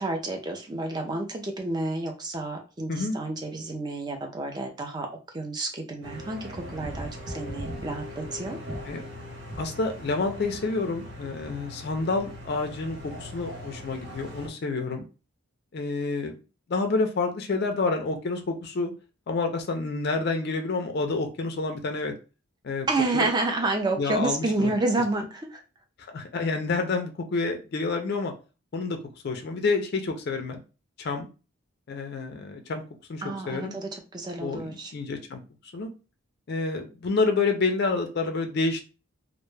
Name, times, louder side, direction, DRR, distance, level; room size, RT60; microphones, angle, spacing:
voice 1, 0.0-5.1 5.3-8.6 22.9-25.6 33.2-34.9, right 2 dB, 20° right, 3 dB, 0.4 m, -29 dB
sound 1, 6.0-14.5, equal, 50° right, 0.7 m, -39 dB
voice 2, 9.6-15.0 15.7-16.3 16.7-18.9 19.3-22.2 22.6-22.9 23.1-23.3 24.0-24.7 26.1-28.3 28.7-29.0 29.2-30.6 31.0-31.3 31.9-32.8 33.1-33.8 34.4-35.4 35.7-35.9 36.5-38.8, left 3 dB, 50° left, 5 dB, 0.4 m, -28 dB
2.1 x 2.0 x 3.0 m, 0.33 s
head